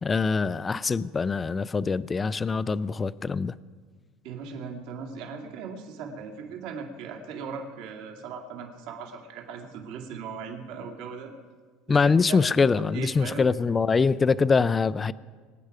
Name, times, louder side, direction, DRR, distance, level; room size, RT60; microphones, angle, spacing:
voice 1, 0.0-3.5 11.9-15.1, left 4 dB, 20° left, 17 dB, 0.4 m, -24 dB
voice 2, 4.2-11.3 11.9-12.4 12.7-13.4, right 6 dB, 65° right, 2 dB, 2.4 m, -38 dB
24.0 x 9.3 x 5.0 m, 1.5 s
supercardioid pair, 125°, 0 cm